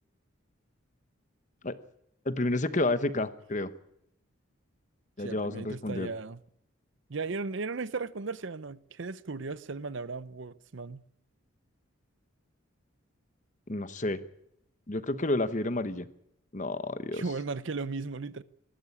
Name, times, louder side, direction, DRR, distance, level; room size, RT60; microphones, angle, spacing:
voice 1, 2.2-3.7 5.2-6.1 13.7-14.2 14.9-16.1 16.5-17.2, left 2 dB, 35° left, 1.0 m, -30 dB
voice 2, 5.2-6.4 7.1-11.0 17.1-18.4, right 4 dB, 60° right, 0.7 m, -36 dB
20.0 x 14.0 x 9.8 m
head